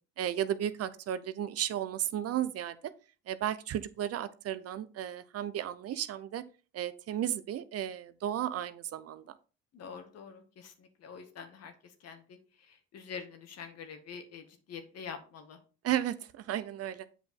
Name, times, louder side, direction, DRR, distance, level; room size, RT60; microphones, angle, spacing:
voice 1, 0.2-2.8 3.3-6.4 6.7-9.3 15.8-17.1, right 11 dB, 55° right, 14 dB, 0.8 m, -34 dB
voice 2, 9.7-12.4 12.7-15.6, left 6 dB, 55° left, 7 dB, 1.8 m, -46 dB
7.9 x 5.1 x 3.8 m, 0.35 s
supercardioid pair, 80°, 30 cm